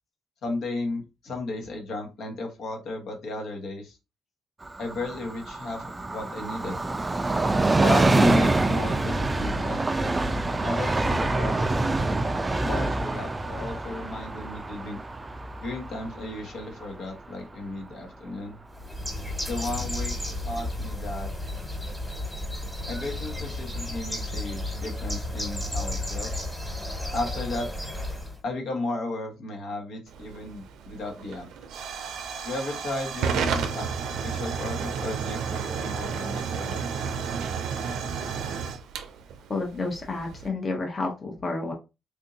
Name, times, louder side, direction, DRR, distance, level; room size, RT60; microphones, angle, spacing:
voice 1, 0.4-4.0 4.8-6.8 7.8-9.8 10.6-11.8 12.7-15.0 15.6-18.6 19.5-20.2 20.4-21.3 22.9-26.3 27.1-27.7 28.4-31.5 32.4-37.4, left 2 dB, 70° left, 1 dB, 1.3 m, -34 dB
Train, 4.6-17.9 18.3-18.4, right 2 dB, 20° right, 0.3 m, -26 dB
Bird, 18.7-28.4, left 1 dB, 5° left, 1.5 m, -33 dB
Hiss / Fire / Tick, 30.1-40.5, right 6 dB, 80° right, 0.5 m, -32 dB
voice 2, 39.5-41.7, left 3 dB, 35° left, 1 dB, 0.9 m, -30 dB
3.5 x 2.7 x 2.6 m, 0.26 s
cardioid pair, 90°, 0 cm